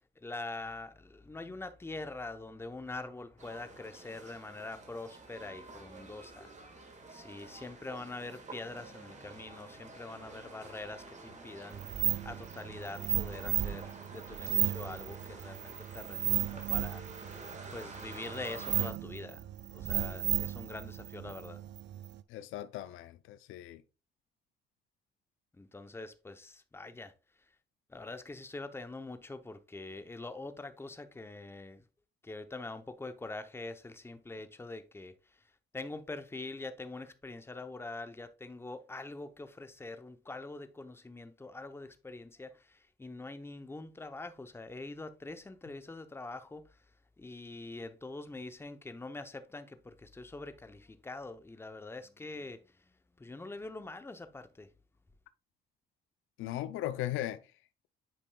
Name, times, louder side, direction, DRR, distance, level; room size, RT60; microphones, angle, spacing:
voice 1, 0.0-11.8 12.2-17.0 17.7-21.7 25.5-27.1 27.9-31.8 32.2-35.4 35.7-46.8 47.2-54.7, left 2 dB, 10° left, 0.7 m, -44 dB
sound 1, 3.4-18.9, right 3 dB, 35° right, 1.6 m, -50 dB
sound 2, 11.7-22.2, right 13 dB, 60° right, 0.5 m, -35 dB
voice 2, 22.3-23.8 56.4-57.4, left 13 dB, 90° left, 0.5 m, -37 dB
8.5 x 5.2 x 2.2 m
cardioid pair, 90°, 20 cm